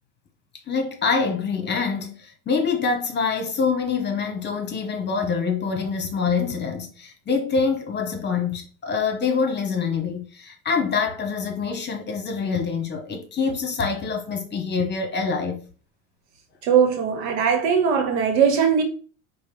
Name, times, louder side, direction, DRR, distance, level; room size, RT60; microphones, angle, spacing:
voice 1, 0.7-15.6, left 5 dB, 30° left, 1.1 m, -25 dB
voice 2, 16.6-18.8, right 7 dB, 80° right, 1.0 m, -20 dB
5.0 x 2.2 x 3.3 m
supercardioid pair, 95°, 33 cm